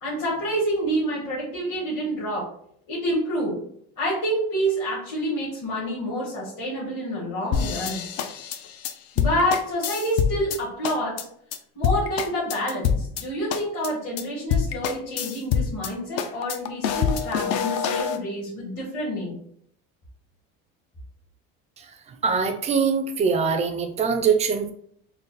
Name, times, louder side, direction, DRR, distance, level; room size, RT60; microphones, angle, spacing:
voice 1, 0.0-2.5 2.9-3.6 4.0-8.0 9.1-11.3 11.7-19.4, equal, 40° left, -7 dB, 1.4 m, -28 dB
sound 1, 7.5-10.6 10.8-11.2 11.5-11.6 11.8-13.2 13.5-13.9 14.2-14.3 14.5-15.9 16.2-18.2, left 7 dB, 55° left, 0.5 m, -25 dB
voice 2, 21.8-24.7, right 5 dB, 25° right, 6 dB, 0.4 m, -23 dB
3.9 x 2.1 x 4.0 m, 0.66 s
cardioid pair, 145°, 30 cm